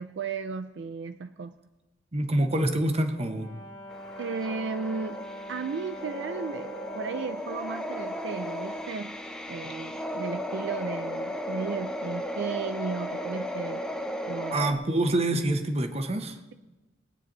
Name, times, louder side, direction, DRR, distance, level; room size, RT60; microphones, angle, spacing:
voice 1, 0.0-1.5 4.2-9.2 9.5-13.8 14.3-14.8, right 5 dB, 65° right, 10 dB, 0.4 m, -35 dB
voice 2, 2.1-3.5 14.5-16.4, right 1 dB, 35° right, 7 dB, 1.0 m, -26 dB
Brass instrument, 3.2-7.5, left 1 dB, 60° left, 2.5 m, -42 dB
sound 1, 3.9-14.7, equal, 5° left, 0.9 m, -35 dB
21.5 x 9.4 x 3.9 m, 1.1 s
head